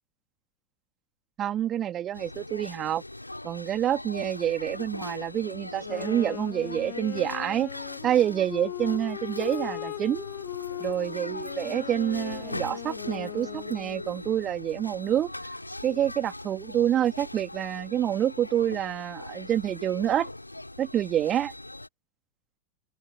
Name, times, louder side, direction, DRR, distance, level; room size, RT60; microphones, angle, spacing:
voice 1, 1.4-3.0 3.4-7.7 8.0-10.3 10.8-15.3 15.8-20.3 20.8-21.5, right 11 dB, 30° right, 3.4 m, -27 dB
sound 1, 2.1-21.9, left 1 dB, 85° left, 3.7 m, -40 dB
Wind instrument woodwind instrument, 5.8-14.1, left 35 dB, 45° left, 1.5 m, -39 dB
open air
figure-of-eight pair, 90°, 0 cm